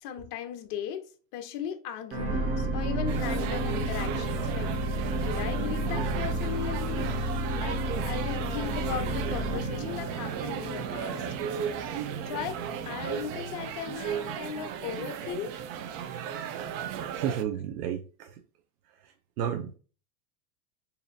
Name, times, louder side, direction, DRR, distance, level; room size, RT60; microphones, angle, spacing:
voice 1, 0.0-4.7 5.0-7.1 7.5-11.3 12.3-15.6, left 9 dB, 50° left, 0.7 m, -37 dB
sound 1, 2.1-14.5 15.1-15.2, right 1 dB, 25° right, 1.2 m, -32 dB
sound 2, 3.1-17.4, right 8 dB, 45° right, 0.6 m, -35 dB
voice 2, 17.1-18.3 19.4-19.7, right 9 dB, 80° right, 0.7 m, -32 dB
4.1 x 2.7 x 2.7 m
hypercardioid pair, 115°, 47 cm